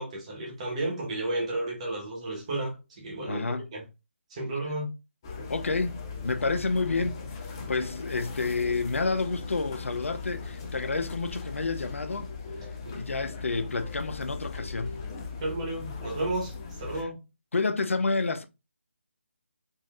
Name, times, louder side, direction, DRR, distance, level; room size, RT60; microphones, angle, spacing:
voice 1, 0.0-3.4 3.7-3.8 4.3-4.9 7.0-7.1 12.8-13.0 15.4-17.2, right 2 dB, 30° right, 1.1 m, -32 dB
voice 2, 3.3-3.7 5.5-7.2 7.7-12.3 12.9-15.0 17.5-18.4, left 3 dB, 75° left, 0.5 m, -29 dB
sound 1, 5.2-17.0, left 4 dB, 20° left, 0.4 m, -38 dB
3.9 x 2.4 x 2.4 m
figure-of-eight pair, 160°, 7 cm